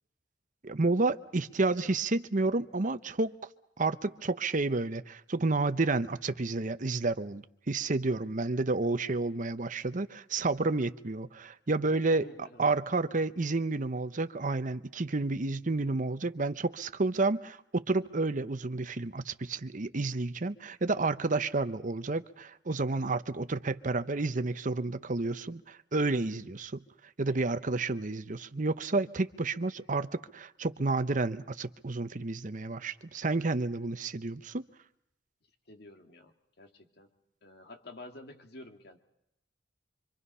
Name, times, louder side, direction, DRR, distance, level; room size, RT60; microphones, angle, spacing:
voice 1, 0.6-3.3 3.8-12.2 12.6-26.8 27.2-34.6, right 3 dB, 45° right, 0.9 m, -30 dB
voice 2, 11.9-12.6 27.3-27.4 27.9-28.0 35.7-37.1 37.4-39.0, left 1 dB, 60° left, 2.4 m, -49 dB
26.0 x 25.5 x 5.6 m
head